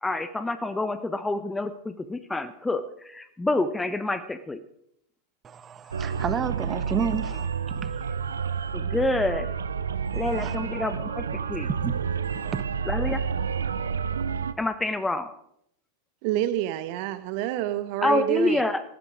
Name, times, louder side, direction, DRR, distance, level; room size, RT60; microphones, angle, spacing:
voice 1, 0.0-4.6 8.7-9.5 10.1-11.7 12.8-13.2 14.6-15.3 18.0-18.8, left 2 dB, 10° left, 12 dB, 1.1 m, -27 dB
voice 2, 5.4-8.0 10.4-10.5 11.7-12.0 12.3-12.6, right 7 dB, 20° right, 13 dB, 1.3 m, -31 dB
sound 1, 5.9-14.5, right 6 dB, 70° right, 0.8 m, -29 dB
voice 3, 16.2-18.6, right 13 dB, 45° right, 12 dB, 1.2 m, -27 dB
18.5 x 15.0 x 4.9 m, 0.71 s
figure-of-eight pair, 90°, 0 cm